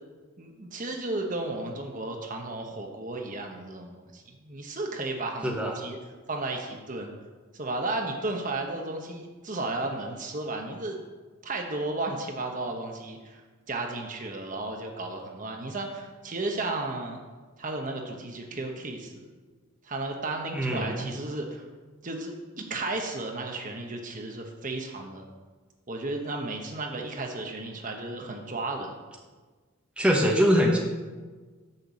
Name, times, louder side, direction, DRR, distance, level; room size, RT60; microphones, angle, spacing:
voice 1, 0.4-6.0 6.3-7.1 7.5-11.0 11.4-13.4 13.7-17.2 17.6-19.3 19.8-21.6 22.0-25.3 25.9-28.9, right 2 dB, 40° right, 2 dB, 1.0 m, -34 dB
voice 2, 5.4-5.8 20.5-21.1 30.0-30.8, equal, 5° right, -1 dB, 1.0 m, -23 dB
6.7 x 5.9 x 7.1 m, 1.4 s
head